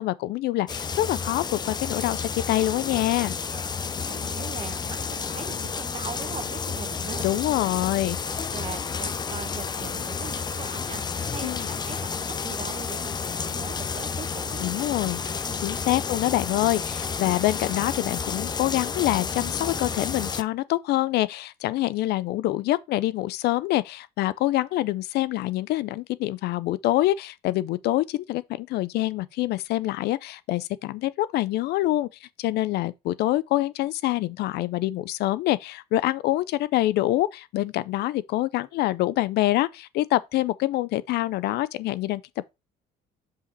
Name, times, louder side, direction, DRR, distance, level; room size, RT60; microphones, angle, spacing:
voice 1, 0.0-3.3 7.2-8.2 11.4-11.6 14.6-15.2 15.6-42.2, left 16 dB, 75° left, 0.5 m, -26 dB
sound 1, 0.7-20.4, left 5 dB, 25° left, 0.5 m, -31 dB
voice 2, 4.1-7.3 8.5-14.8 15.4-15.6, right 6 dB, 35° right, 1.1 m, -40 dB
5.6 x 5.0 x 4.0 m
cardioid pair, 110°, 17 cm